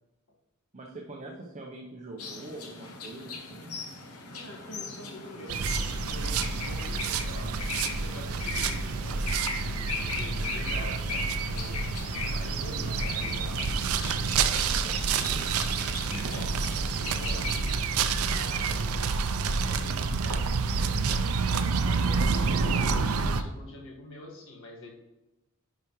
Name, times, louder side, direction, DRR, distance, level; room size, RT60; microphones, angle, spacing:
voice 1, 0.7-3.8 14.3-15.6 16.0-16.3 18.5-18.6, right 2 dB, 35° right, -1 dB, 0.8 m, -43 dB
sound 1, 2.2-17.8, left 4 dB, 90° left, 1.0 m, -39 dB
voice 2, 4.3-13.9 16.2-16.5 17.0-17.5 18.1-24.9, left 1 dB, 65° left, -1 dB, 1.6 m, -46 dB
sound 2, 5.5-23.4, right 5 dB, 75° right, 0.5 m, -28 dB
10.5 x 4.8 x 3.1 m, 1.1 s
head